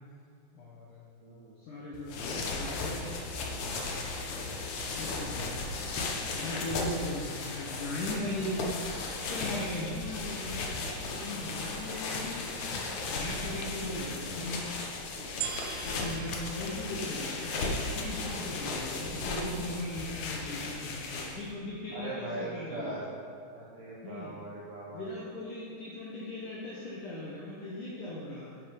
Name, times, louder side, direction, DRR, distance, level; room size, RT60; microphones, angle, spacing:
voice 1, 0.5-1.0 1.6-3.1 4.3-4.6 5.0-5.5 6.3-8.7 9.2-10.7 11.1-12.5 13.1-14.8 15.8-23.1 24.0-24.4 24.9-28.6, left 1 dB, 70° left, -5 dB, 2.0 m, -38 dB
voice 2, 1.2-1.5 4.4-4.7 21.9-23.1 23.5-25.0, right 2 dB, 70° right, -5 dB, 2.1 m, -40 dB
sound 1, 1.9-21.5, left 3 dB, 85° left, 1.6 m, -36 dB
sound 2, 15.4-17.8 18.4-18.5, right 11 dB, 90° right, 3.1 m, -41 dB
10.5 x 10.0 x 5.4 m, 2.5 s
omnidirectional pair, 5.5 m